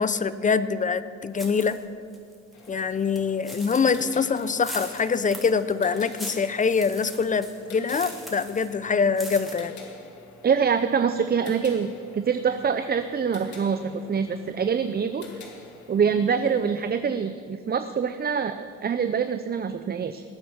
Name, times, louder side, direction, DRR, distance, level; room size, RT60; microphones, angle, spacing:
voice 1, 0.0-1.8 2.7-9.7, left 5 dB, 25° left, 14 dB, 0.6 m, -24 dB
sound 1, 1.4-1.8 2.1-8.7 9.0-9.5, equal, ahead, 3.1 m, -41 dB
sound 2, 2.5-16.9, left 3 dB, 70° left, 2.4 m, -47 dB
voice 2, 10.4-11.9 12.1-15.2 15.9-20.2, right 6 dB, 30° right, 10 dB, 0.6 m, -25 dB
19.0 x 9.1 x 5.8 m, 2.2 s
cardioid pair, 90°, 30 cm